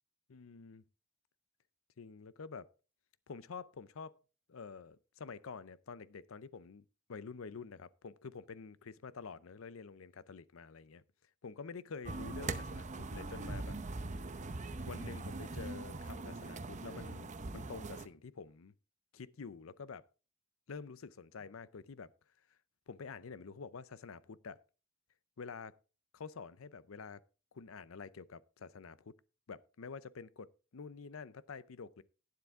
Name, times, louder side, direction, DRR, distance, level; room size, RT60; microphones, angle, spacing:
voice 1, 0.3-0.8 2.0-2.7 3.3-4.2 4.5-11.0 11.4-13.8 14.9-18.7 19.1-20.0 20.7-22.1 22.9-24.6 25.4-25.8 26.1-27.2 27.5-29.1 29.5-32.0, left 5 dB, 70° left, 0.6 m, -48 dB
sound 1, 12.0-18.1, right 3 dB, 35° right, 0.7 m, -41 dB
11.5 x 9.6 x 3.6 m
head